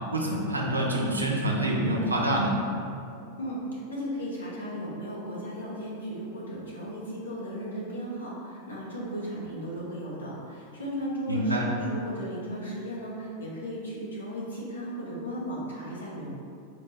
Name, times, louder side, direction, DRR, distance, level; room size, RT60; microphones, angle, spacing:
voice 1, 0.1-2.6 11.3-11.6, right 1 dB, 80° right, -2 dB, 0.5 m, -26 dB
voice 2, 3.4-16.3, equal, 70° left, -6 dB, 0.9 m, -35 dB
4.4 x 2.2 x 3.0 m, 2.6 s
figure-of-eight pair, 90°, 0 cm